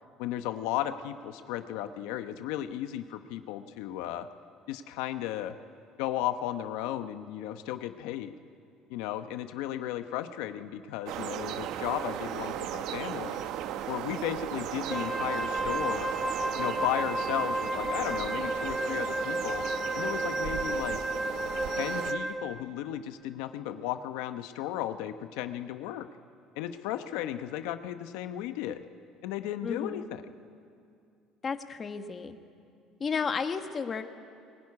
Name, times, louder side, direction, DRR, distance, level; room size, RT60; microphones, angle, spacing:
voice 1, 0.2-4.3 4.7-5.6 6.0-8.3 8.9-13.4 13.9-16.1 16.6-19.6 19.9-21.0 21.8-26.1 26.6-28.8 29.2-30.2, left 12 dB, 90° left, 9 dB, 0.9 m, -35 dB
sound 1, 11.1-22.1, right 10 dB, 65° right, 0.9 m, -36 dB
Wind instrument woodwind instrument, 14.9-22.5, right 1 dB, 5° right, 1.3 m, -32 dB
voice 2, 29.6-30.1 31.4-32.4 33.0-34.1, left 5 dB, 30° left, 7 dB, 1.2 m, -32 dB
21.5 x 18.5 x 9.7 m, 2.4 s
cardioid pair, 135°, 0 cm